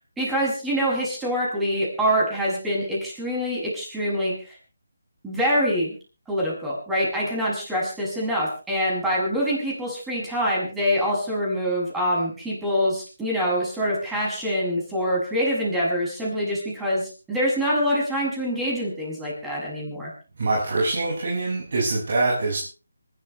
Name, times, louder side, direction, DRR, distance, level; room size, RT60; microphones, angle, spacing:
voice 1, 0.2-4.3 5.2-5.9 6.3-20.1, equal, 5° right, -4 dB, 7.1 m, -25 dB
voice 2, 20.4-22.6, right 2 dB, 55° right, -4 dB, 6.3 m, -24 dB
25.5 x 13.0 x 3.3 m, 0.34 s
figure-of-eight pair, 160°, 0 cm